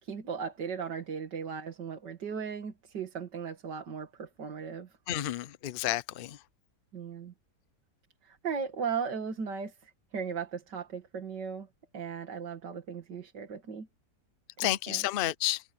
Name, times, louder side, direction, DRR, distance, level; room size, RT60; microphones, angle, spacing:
voice 1, 0.0-4.9 6.9-7.3 8.2-11.7 11.9-13.9 14.6-15.1, right 6 dB, 90° right, 2.6 m, -37 dB
voice 2, 5.1-6.4 14.6-15.6, left 14 dB, 65° left, 0.5 m, -30 dB
omnidirectional pair, 1.8 m